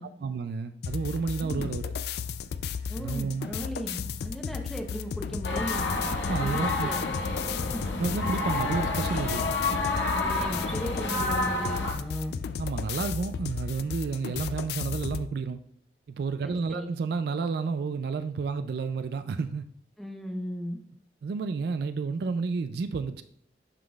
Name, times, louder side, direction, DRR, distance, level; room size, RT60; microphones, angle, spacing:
voice 1, 0.2-1.9 3.0-3.5 6.3-6.9 8.0-9.4 12.6-15.6 16.1-19.6 21.2-23.2, right 4 dB, 60° right, 0.3 m, -31 dB
sound 1, 0.8-15.3, left 6 dB, 60° left, 0.3 m, -34 dB
voice 2, 2.9-5.8 6.4-7.0 7.7-7.9 10.1-12.4 16.4-16.9 20.0-20.8, equal, ahead, 0.7 m, -36 dB
sound 2, 5.4-11.9, left 2 dB, 90° left, 0.8 m, -29 dB
11.5 x 3.8 x 2.3 m
head